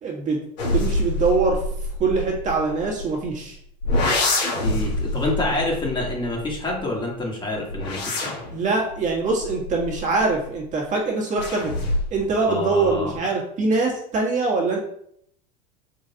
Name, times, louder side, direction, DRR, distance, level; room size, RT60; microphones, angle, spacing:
voice 1, 0.0-0.4 0.7-1.6 2.0-3.6 8.5-11.7 12.1-14.9, right 3 dB, 35° right, -2 dB, 1.5 m, -23 dB
sound 1, 0.6-3.3 3.8-6.9 7.5-10.5 11.4-12.3 12.6-13.2, left 2 dB, 75° left, 1.8 m, -26 dB
voice 2, 4.6-8.3 12.4-13.1, left 2 dB, 20° left, -2 dB, 1.5 m, -27 dB
3.9 x 3.1 x 4.0 m, 0.68 s
hypercardioid pair, 95°, 21 cm